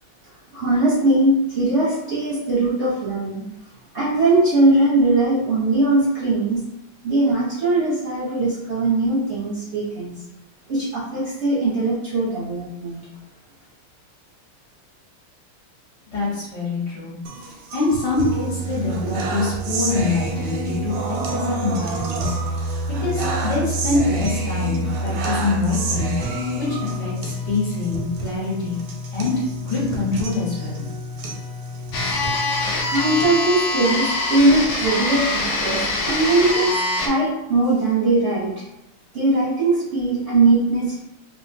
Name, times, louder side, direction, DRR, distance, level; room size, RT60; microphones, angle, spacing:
voice 1, 0.5-3.4 3.9-6.6 7.0-10.2 10.7-13.0 32.8-36.7 37.0-38.5 39.1-41.0, right 2 dB, 60° right, -8 dB, 0.7 m, -20 dB
voice 2, 16.1-17.1 17.7-22.3 22.9-26.1 26.6-28.8 29.1-29.3 29.6-30.8, left 3 dB, 55° left, -7 dB, 1.4 m, -25 dB
sound 1, 17.3-33.3, right 2 dB, 85° right, 1.5 m, -28 dB
sound 2, 31.9-37.1, left 2 dB, 80° left, 0.9 m, -24 dB
3.6 x 2.2 x 2.5 m, 0.87 s
omnidirectional pair, 2.4 m